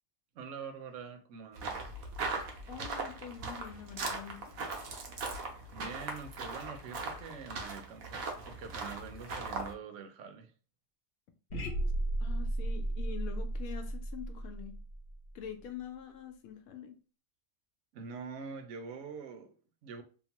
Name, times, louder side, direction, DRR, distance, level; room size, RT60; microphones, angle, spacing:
voice 1, 0.3-1.9 5.7-10.5 17.9-20.0, right 6 dB, 70° right, 6 dB, 0.9 m, -45 dB
sound 1, 1.6-9.7, right 3 dB, 90° right, 1.1 m, -39 dB
voice 2, 2.7-4.7 12.2-14.7 15.3-17.0, left 8 dB, 85° left, 7 dB, 1.0 m, -45 dB
sound 2, 11.5-15.6, right 1 dB, 55° left, 1.1 m, -34 dB
2.9 x 2.1 x 2.8 m, 0.38 s
omnidirectional pair, 1.4 m